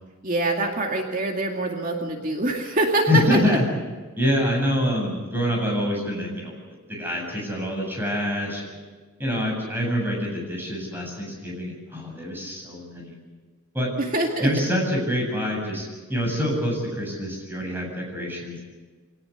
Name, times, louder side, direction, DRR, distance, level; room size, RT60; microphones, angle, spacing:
voice 1, 0.2-3.6 14.0-14.5, right 2 dB, 40° right, 2 dB, 2.3 m, -24 dB
voice 2, 3.1-3.6 4.2-6.5 6.9-8.8 9.2-13.2 13.7-13.9 14.4-18.6, left 1 dB, 10° right, -1 dB, 7.7 m, -26 dB
25.0 x 18.5 x 8.3 m, 1.4 s
head